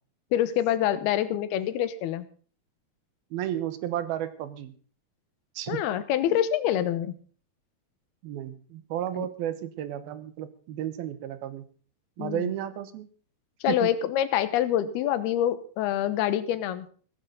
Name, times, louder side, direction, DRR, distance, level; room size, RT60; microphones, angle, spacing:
voice 1, 0.3-2.3 5.7-7.1 9.1-9.3 12.2-12.5 13.6-16.9, left 11 dB, 85° left, 13 dB, 3.0 m, -26 dB
voice 2, 3.3-4.7 5.6-5.8 6.3-6.4 8.2-11.7 12.2-13.1 13.7-13.9, right 11 dB, 80° right, 13 dB, 2.9 m, -33 dB
16.0 x 14.5 x 3.9 m, 0.41 s
omnidirectional pair, 4.4 m